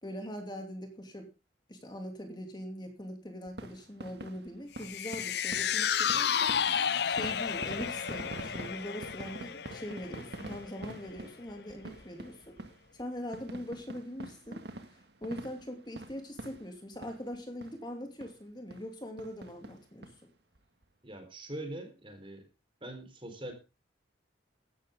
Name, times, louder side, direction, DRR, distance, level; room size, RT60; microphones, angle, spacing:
voice 1, 0.0-1.3 1.7-12.5 12.9-14.6 14.9-20.3, equal, 25° left, 4 dB, 2.7 m, -42 dB
sound 1, 3.5-17.4 17.6-17.8 18.2-18.3 18.7-18.9 19.2-20.1 20.6-20.7 20.8-20.9, right 1 dB, 60° right, 1.9 m, -46 dB
sound 2, 4.8-11.2 11.6-11.7, left 8 dB, 55° left, 0.6 m, -32 dB
voice 2, 21.0-22.5 22.8-23.5, right 1 dB, 25° right, 7 dB, 4.0 m, -42 dB
15.5 x 12.5 x 3.7 m, 0.31 s
head